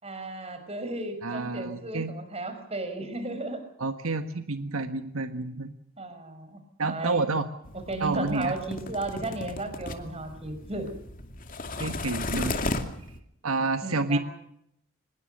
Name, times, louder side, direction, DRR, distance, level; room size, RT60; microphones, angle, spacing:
voice 1, 0.0-3.6 6.0-7.3 7.9-10.9 13.8-14.2, right 2 dB, 30° right, 8 dB, 5.3 m, -34 dB
voice 2, 1.2-2.1 3.8-5.7 6.8-7.5 8.0-8.5 11.8-12.8 13.4-14.2, right 3 dB, 85° right, 8 dB, 1.5 m, -29 dB
sound 1, 7.6-13.2, left 2 dB, 40° left, 2.5 m, -35 dB
24.5 x 21.0 x 6.6 m, 0.75 s
head